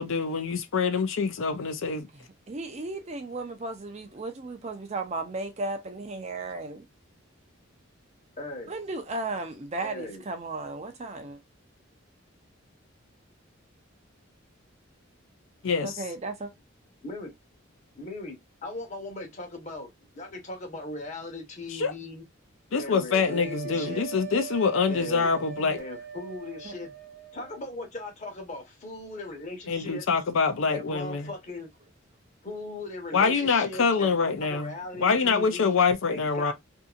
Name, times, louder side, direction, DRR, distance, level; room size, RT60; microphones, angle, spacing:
voice 1, 0.0-2.1 15.6-16.0 21.8-21.9 22.7-25.8 29.7-31.3 33.1-34.7 35.0-36.5, left 5 dB, 70° left, 0.5 m, -25 dB
voice 2, 2.5-6.8 8.7-11.4 15.8-16.5 26.7-26.8, right 2 dB, 35° right, 0.5 m, -35 dB
voice 3, 8.4-8.7 9.8-10.3 17.0-17.3 17.9-22.2 22.7-24.0 24.9-25.3 25.8-26.9 27.3-30.0 30.7-31.7 32.4-35.8 36.1-36.5, left 2 dB, 35° left, 1.0 m, -38 dB
sound 1, 23.2-27.6, right 6 dB, 50° right, 1.0 m, -40 dB
2.7 x 2.7 x 2.3 m
head